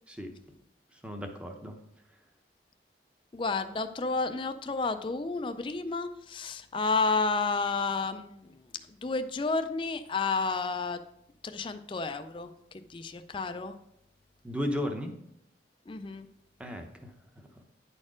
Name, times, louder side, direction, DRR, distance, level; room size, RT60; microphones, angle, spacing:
voice 1, 1.0-1.8 14.4-15.1 16.6-17.1, left 1 dB, 5° right, 4 dB, 0.8 m, -34 dB
voice 2, 3.3-8.6 9.0-11.0 11.4-12.5 12.9-13.7 15.9-16.3, left 4 dB, 30° left, 9 dB, 0.4 m, -31 dB
9.7 x 4.3 x 5.0 m, 0.78 s
head